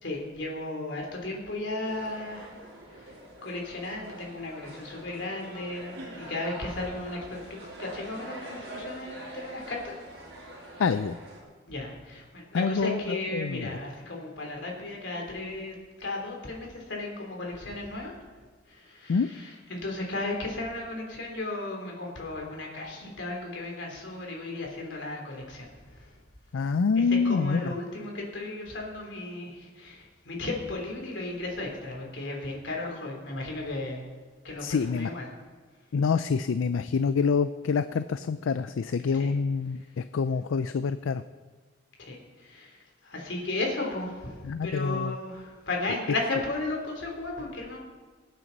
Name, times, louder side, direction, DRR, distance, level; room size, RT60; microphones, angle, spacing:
voice 1, 0.0-2.5 3.0-3.1 3.4-9.9 11.7-18.1 18.7-25.7 26.0-26.1 27.1-34.0 34.4-35.3 39.1-39.3 42.0-47.8, left 2 dB, 70° left, 0 dB, 3.3 m, -35 dB
sound 1, 1.8-11.4, right 1 dB, 55° right, 4.7 m, -44 dB
voice 2, 10.8-11.2 12.5-13.7 19.1-19.3 26.5-27.7 34.6-35.1 35.9-41.2 44.4-45.1, left 5 dB, 85° left, 12 dB, 0.4 m, -26 dB
23.5 x 9.2 x 4.0 m, 1.4 s
head